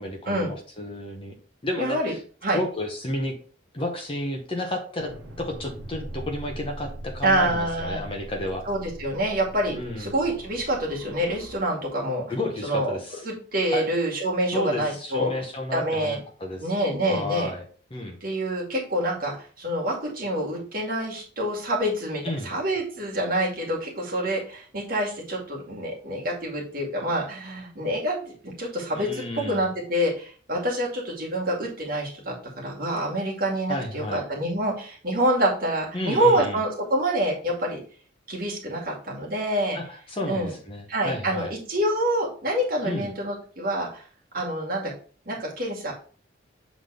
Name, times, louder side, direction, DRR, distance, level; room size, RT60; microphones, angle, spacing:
voice 1, 0.0-1.4 1.6-2.2 2.5-3.4 3.7-5.1 5.4-8.7 9.7-10.1 12.3-13.3 13.7-13.8 14.5-16.7 17.1-17.6 17.9-18.2 22.2-22.5 28.9-29.7 33.7-34.2 35.9-36.6 39.7-41.5 42.8-43.1, left 1 dB, 30° left, 2 dB, 1.0 m, -31 dB
voice 2, 1.8-2.1 2.4-2.6 7.2-8.0 8.7-12.2 12.6-13.0 13.2-15.3 15.7-16.2 16.6-17.5 18.2-32.3 32.6-37.8 38.3-39.8 40.3-40.5 40.9-44.1 44.3-44.9 45.3-45.9, right 1 dB, 50° right, -3 dB, 2.1 m, -26 dB
sound 1, 5.0-11.6, right 1 dB, 75° right, 1.1 m, -41 dB
7.3 x 3.9 x 3.3 m, 0.42 s
head